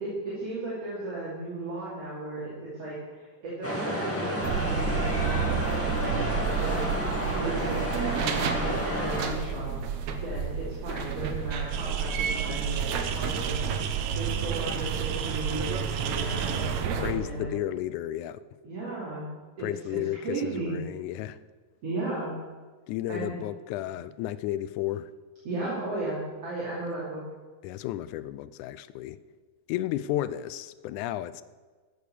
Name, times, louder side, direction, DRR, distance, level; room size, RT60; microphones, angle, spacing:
voice 1, 0.0-6.9 7.3-9.7 10.1-13.8 14.1-17.6 18.6-19.3 19.6-20.0 20.2-20.8 21.8-22.4 23.1-23.3 25.5-27.3, right 2 dB, 50° right, -8 dB, 3.7 m, -35 dB
sound 1, 3.6-9.3, equal, 5° left, 1.6 m, -30 dB
sound 2, 4.4-17.1, right 6 dB, 65° right, 2.0 m, -31 dB
sound 3, 11.7-16.8, right 9 dB, 85° right, 2.4 m, -36 dB
voice 2, 17.0-18.4 19.6-21.4 22.9-25.1 27.6-29.2 29.7-31.4, left 13 dB, 80° left, 16 dB, 1.9 m, -33 dB
14.0 x 6.6 x 6.9 m, 1.4 s
omnidirectional pair, 3.7 m